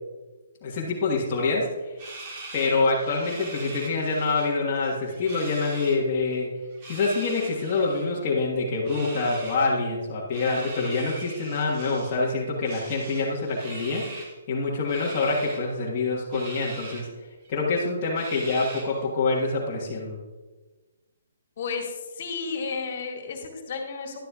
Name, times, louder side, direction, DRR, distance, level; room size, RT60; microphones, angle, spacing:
voice 1, 0.6-1.9 2.5-6.5 6.9-17.1 17.5-20.2, left 3 dB, 30° left, -6 dB, 1.4 m, -26 dB
sound 1, 2.0-4.5 4.8-6.0 6.7-8.1 8.8-9.6 10.3-12.2 12.6-14.3 14.9-15.6 16.3-17.0 17.4-17.5 18.2-19.0, right 2 dB, 35° right, 2.2 m, -41 dB
voice 2, 21.6-24.2, left 5 dB, 50° left, 1 dB, 2.0 m, -32 dB
11.5 x 11.0 x 2.4 m, 1.3 s
hypercardioid pair, 160°, 0 cm